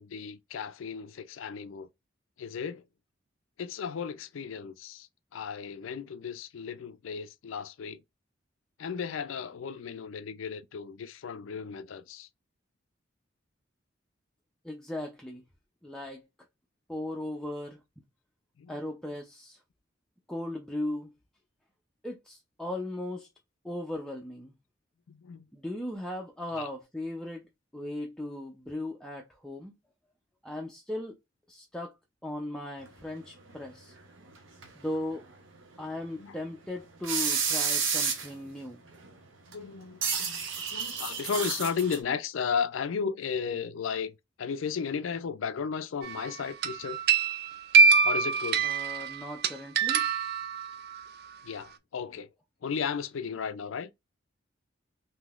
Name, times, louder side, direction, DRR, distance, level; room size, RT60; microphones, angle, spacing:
voice 1, 0.0-1.9 2.4-2.8 3.6-8.0 8.8-12.3 18.6-18.8 25.1-25.5 26.6-26.7 36.2-36.4 39.5-47.0 48.0-48.7 51.4-52.3 52.6-53.9, left 6 dB, 85° left, 0.4 m, -35 dB
voice 2, 14.6-15.4 15.8-16.2 16.9-17.8 18.7-19.6 20.3-21.1 22.0-23.3 23.6-24.5 25.5-27.4 27.7-29.7 30.4-31.1 31.5-31.9 32.2-33.9 34.7-35.2 35.8-38.8 48.6-50.0, left 1 dB, 5° left, 0.4 m, -37 dB
sound 1, 33.2-34.3 34.6-34.7 35.1-35.2 35.8-35.9 36.5-36.6 36.8-36.9 37.0-38.5 38.9-39.1 39.5-39.6 40.0-42.0, right 6 dB, 80° right, 0.8 m, -30 dB
sound 2, 46.0-46.3 46.6-51.0, right 5 dB, 55° right, 0.4 m, -24 dB
3.6 x 2.7 x 2.3 m
head